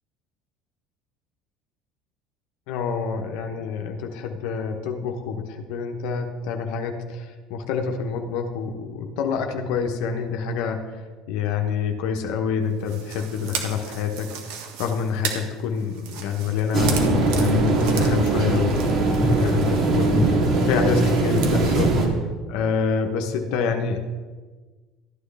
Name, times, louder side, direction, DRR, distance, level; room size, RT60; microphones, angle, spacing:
voice 1, 2.7-18.8 19.2-24.0, left 6 dB, 70° left, 3 dB, 1.1 m, -27 dB
sound 1, 12.8-22.0, right 7 dB, 75° right, 1.7 m, -37 dB
sound 2, 16.7-22.1, right 2 dB, 50° right, 3.0 m, -20 dB
13.5 x 9.7 x 3.5 m, 1.4 s
hypercardioid pair, 75°, 0 cm